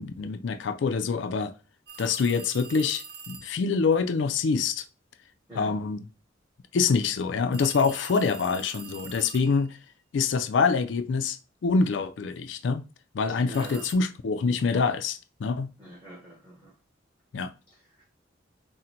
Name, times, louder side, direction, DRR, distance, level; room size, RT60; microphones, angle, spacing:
voice 1, 0.0-1.5 2.0-4.8 5.5-6.0 6.7-9.8 10.1-11.4 11.6-12.8 13.1-15.7 17.3-17.5, left 5 dB, 70° left, 0.4 m, -25 dB
sound 1, 1.9-3.6 7.5-9.8 13.5-13.9, right 6 dB, 60° right, 0.7 m, -44 dB
voice 2, 13.5-13.9 15.8-16.7 17.7-18.0, equal, 10° right, 1.2 m, -44 dB
3.8 x 2.1 x 4.3 m
head